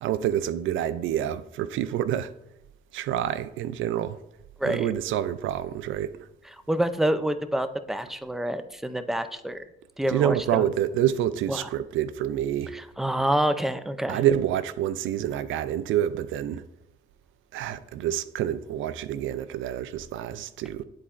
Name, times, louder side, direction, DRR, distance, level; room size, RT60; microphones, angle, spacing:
voice 1, 0.0-2.3 2.9-4.2 4.6-6.2 10.1-12.7 14.1-16.6 17.5-20.8, right 11 dB, 80° right, 0.4 m, -27 dB
voice 2, 6.7-9.6 10.0-10.7 11.5-11.7 12.7-14.2, right 1 dB, ahead, 0.4 m, -27 dB
9.9 x 4.1 x 2.5 m
cardioid pair, 90°, 20 cm